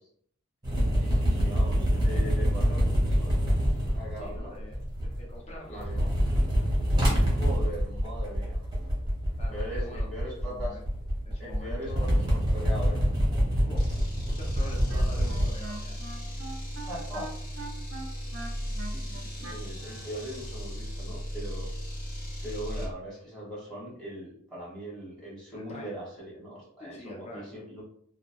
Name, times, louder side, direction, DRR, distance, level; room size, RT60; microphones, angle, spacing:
sound 1, 0.6-5.4 5.7-15.4, equal, 20° right, 0.8 m, -26 dB
voice 1, 1.0-3.4 3.9-4.6 5.7-6.1 7.2-8.6 9.5-10.8 11.4-13.1 16.9-17.3 18.8-21.7 22.4-27.8, equal, 5° left, -7 dB, 1.1 m, -40 dB
voice 2, 4.2-6.1 9.4-10.8 11.3-12.4 13.6-13.9 14.1-15.9 25.5-26.0 26.8-27.5, left 1 dB, 30° left, -2 dB, 0.7 m, -45 dB
sound 2, 13.7-22.9, equal, 50° left, 1.0 m, -36 dB
Wind instrument woodwind instrument, 14.5-20.1, right 2 dB, 65° right, 0.5 m, -43 dB
2.8 x 2.1 x 2.5 m, 0.63 s
head